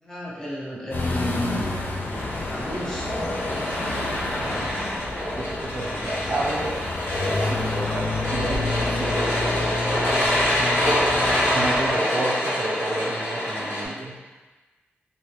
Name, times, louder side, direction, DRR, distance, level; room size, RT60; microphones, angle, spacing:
voice 1, 0.0-1.8 2.4-3.1, equal, 15° left, -6 dB, 0.8 m, -31 dB
sound 1, 0.9-11.9, left 2 dB, 50° left, 0.4 m, -30 dB
sound 2, 2.1-13.8, left 1 dB, 65° left, 0.8 m, -26 dB
voice 2, 4.1-4.8 5.3-6.9 7.4-9.7 11.5-14.2, right 2 dB, 45° right, -3 dB, 0.4 m, -31 dB
3.2 x 2.6 x 2.8 m, 1.3 s
wide cardioid pair, 105°, 4 cm